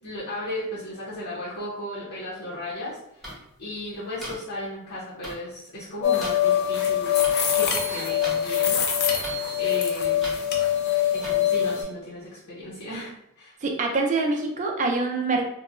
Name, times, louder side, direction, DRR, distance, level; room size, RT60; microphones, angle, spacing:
voice 1, 0.0-7.2 7.5-8.8 9.6-10.3 11.1-13.5, left 1 dB, 75° left, -8 dB, 0.7 m, -35 dB
sound 1, 3.2-3.3 4.2-4.3 5.2-5.3 6.2-6.3 7.2-7.3 8.2-8.4 9.2-9.4 10.2-10.4 11.2-11.4, equal, ahead, 0.7 m, -36 dB
sound 2, 6.0-11.8, left 9 dB, 45° left, 0.4 m, -23 dB
voice 2, 13.6-15.5, right 3 dB, 35° right, 2 dB, 0.4 m, -25 dB
2.9 x 2.0 x 2.4 m, 0.82 s
head